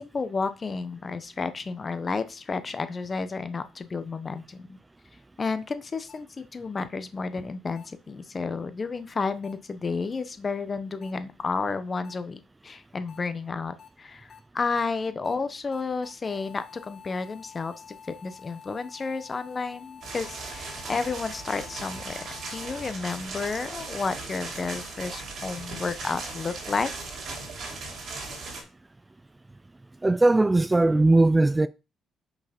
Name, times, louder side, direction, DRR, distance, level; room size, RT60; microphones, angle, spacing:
voice 1, 0.0-4.8 5.4-17.7 18.1-22.2 22.5-26.9, left 4 dB, 35° left, 0.9 m, -31 dB
sound 1, 6.1-6.2 7.8-7.9 9.4-9.5 11.0-11.1 12.0-12.1 13.1-13.2 13.8-13.9 14.3-14.4 14.8-14.9 15.2-15.3 15.7-22.9, left 7 dB, 50° left, 1.7 m, -49 dB
sound 2, 20.0-28.6, right 3 dB, 65° right, 2.8 m, -38 dB
voice 2, 30.0-31.7, right 2 dB, 15° right, 0.4 m, -19 dB
5.8 x 4.7 x 5.2 m
cardioid pair, 90°, 0 cm